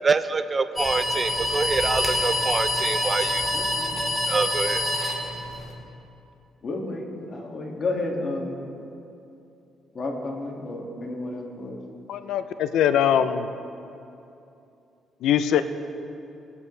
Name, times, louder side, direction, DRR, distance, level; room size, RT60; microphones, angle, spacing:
voice 1, 0.0-3.5 4.3-4.9, right 4 dB, 35° right, 11 dB, 0.5 m, -25 dB
sound 1, 0.8-5.7, left 1 dB, 5° left, 2.6 m, -26 dB
voice 2, 3.5-4.0 6.6-8.6 9.9-11.8, left 2 dB, 45° left, 0 dB, 2.2 m, -31 dB
voice 3, 12.1-13.5 15.2-15.6, left 9 dB, 80° left, 11 dB, 0.6 m, -22 dB
20.5 x 9.5 x 3.3 m, 2.7 s
cardioid pair, 90°, 0 cm